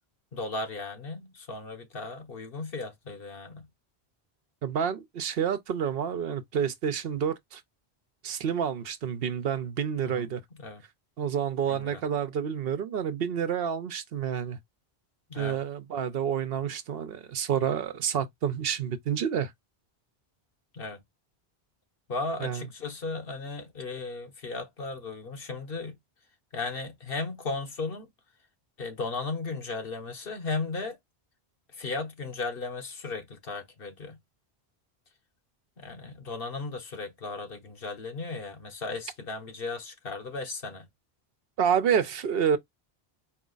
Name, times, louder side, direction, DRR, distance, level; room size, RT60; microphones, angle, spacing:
voice 1, 0.3-3.7 10.0-10.3 10.6-10.8 11.7-12.0 15.3-15.6 20.7-21.0 22.1-25.9 26.5-28.1 28.8-31.0 31.8-34.2 35.8-40.9, left 3 dB, 65° left, 1.3 m, -36 dB
voice 2, 4.6-7.6 8.2-10.4 11.2-14.6 15.4-19.5 22.4-22.6 41.6-42.6, right 8 dB, 70° right, 0.9 m, -29 dB
4.5 x 2.3 x 3.8 m
omnidirectional pair, 1.0 m